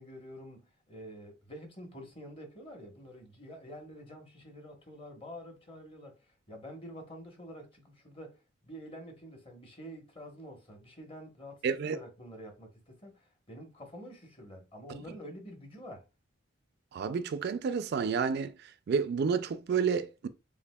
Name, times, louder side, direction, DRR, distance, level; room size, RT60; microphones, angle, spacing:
voice 1, 0.0-16.0, equal, 30° left, 1.1 m, -48 dB
voice 2, 11.6-12.0 16.9-18.5 18.9-20.3, right 6 dB, 55° right, 0.3 m, -30 dB
6.7 x 2.6 x 2.2 m
head